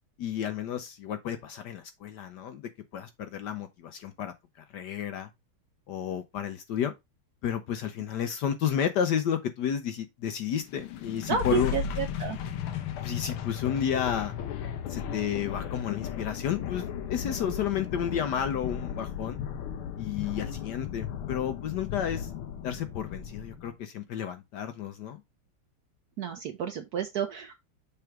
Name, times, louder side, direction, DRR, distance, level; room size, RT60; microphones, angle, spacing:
voice 1, 0.2-5.3 5.9-6.9 7.4-11.8 13.0-14.3 14.9-19.4 20.0-22.3 22.6-25.2, left 9 dB, 70° left, 1.1 m, -32 dB
sound 1, 10.6-23.7, left 9 dB, 90° left, 1.7 m, -35 dB
voice 2, 11.3-12.4 26.2-27.6, right 8 dB, 65° right, 1.0 m, -31 dB
7.0 x 3.4 x 4.5 m
omnidirectional pair, 2.3 m